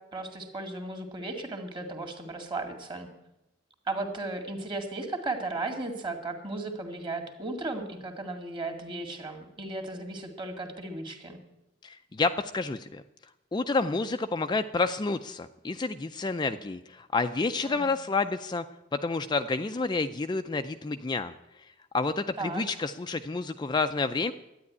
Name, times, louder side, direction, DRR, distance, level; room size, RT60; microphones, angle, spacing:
voice 1, 0.1-3.1 3.9-11.4 17.6-17.9 22.4-22.7, right 2 dB, 25° right, 4 dB, 2.0 m, -35 dB
voice 2, 11.8-13.0 13.5-18.6 18.9-21.7 21.9-24.3, left 3 dB, 25° left, 8 dB, 0.4 m, -29 dB
12.0 x 9.7 x 9.5 m, 0.92 s
head